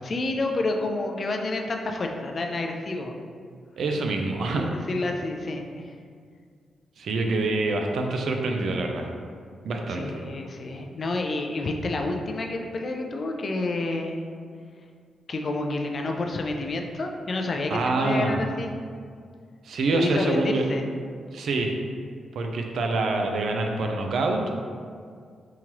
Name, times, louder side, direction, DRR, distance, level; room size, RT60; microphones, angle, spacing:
voice 1, 0.0-3.2 4.6-5.9 9.9-14.2 15.3-18.7 19.9-20.8, left 2 dB, 40° left, 3 dB, 0.3 m, -29 dB
voice 2, 3.8-4.7 7.0-9.1 9.6-10.0 17.7-18.4 19.6-20.6 21.3-21.7 22.3-24.4, right 3 dB, 70° right, 3 dB, 0.4 m, -26 dB
3.7 x 2.9 x 2.9 m, 2.1 s
wide cardioid pair, 130°, 0 cm